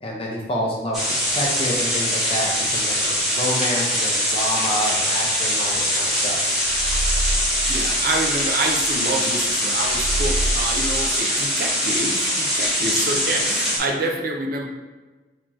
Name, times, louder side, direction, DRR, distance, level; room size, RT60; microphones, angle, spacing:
voice 1, 0.0-6.6, equal, 30° left, -2 dB, 0.8 m, -28 dB
sound 1, 0.9-13.8, equal, ahead, 1.3 m, -22 dB
sound 2, 5.9-6.0 6.2-9.1 9.3-9.4 9.8-11.0, right 2 dB, 80° left, 0.4 m, -27 dB
voice 2, 7.7-14.7, right 2 dB, 50° right, 1 dB, 0.6 m, -27 dB
4.5 x 3.0 x 3.6 m, 1.2 s
head